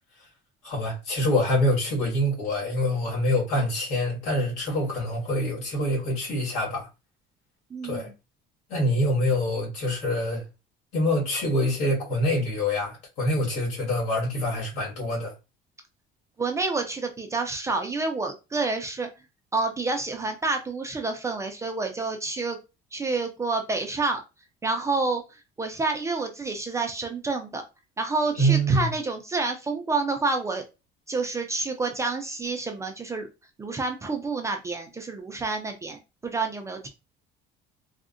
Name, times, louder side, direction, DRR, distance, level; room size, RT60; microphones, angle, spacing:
voice 1, 0.6-6.9 7.8-8.1 8.7-10.4 10.9-15.3 28.4-28.9, equal, 80° left, 1.8 m, -25 dB
voice 2, 7.7-8.1 16.4-19.1 19.5-22.6 22.9-24.2 24.6-25.2 25.6-27.6 28.0-30.6 31.1-33.3 33.6-36.9, right 3 dB, 15° right, 0.3 m, -28 dB
3.5 x 2.0 x 2.5 m
cardioid pair, 150°, 20 cm